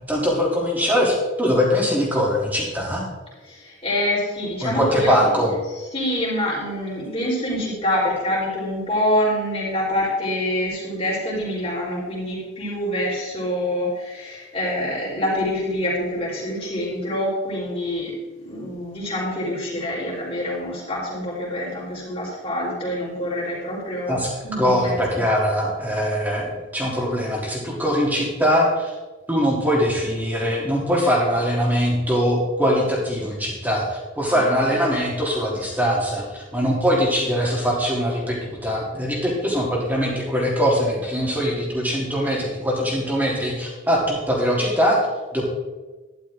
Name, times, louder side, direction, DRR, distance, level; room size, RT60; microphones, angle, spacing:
voice 1, 0.0-3.0 4.6-5.5 24.1-24.3 24.6-28.9 29.3-45.0 45.3-45.4, equal, 10° right, -3 dB, 3.2 m, -22 dB
voice 2, 3.5-5.5 5.9-18.1 18.4-25.2 34.3-34.4 34.6-34.8, left 1 dB, 30° left, -5 dB, 4.5 m, -26 dB
12.5 x 11.5 x 3.8 m, 1.2 s
head